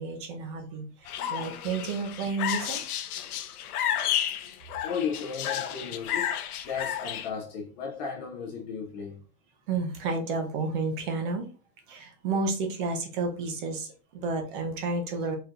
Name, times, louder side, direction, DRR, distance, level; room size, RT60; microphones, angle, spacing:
voice 1, 0.0-3.0 9.7-11.5 11.9-15.4, right 3 dB, 35° right, 0.8 m, -31 dB
sound 1, 1.1-7.3, left 10 dB, 65° left, 0.8 m, -32 dB
voice 2, 4.8-6.4 6.7-9.2, left 6 dB, 30° left, 0.6 m, -34 dB
4.8 x 4.4 x 2.5 m
supercardioid pair, 175°, 48 cm